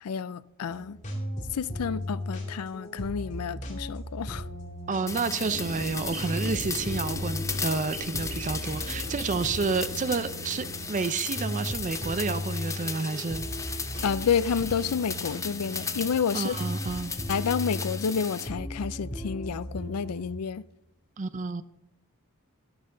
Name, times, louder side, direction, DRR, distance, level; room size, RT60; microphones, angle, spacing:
voice 1, 0.0-1.0 1.5-4.4 14.0-16.6 17.3-20.6, left 6 dB, 85° left, 0.4 m, -29 dB
sound 1, 0.6-20.3, equal, 35° left, 2.3 m, -37 dB
voice 2, 4.9-13.5 16.3-17.1 21.2-21.6, right 4 dB, 35° right, 0.5 m, -30 dB
sound 2, 5.1-18.5, left 5 dB, 15° left, 0.6 m, -36 dB
sound 3, 5.5-10.8, right 1 dB, 85° right, 1.9 m, -40 dB
12.0 x 12.0 x 3.8 m
head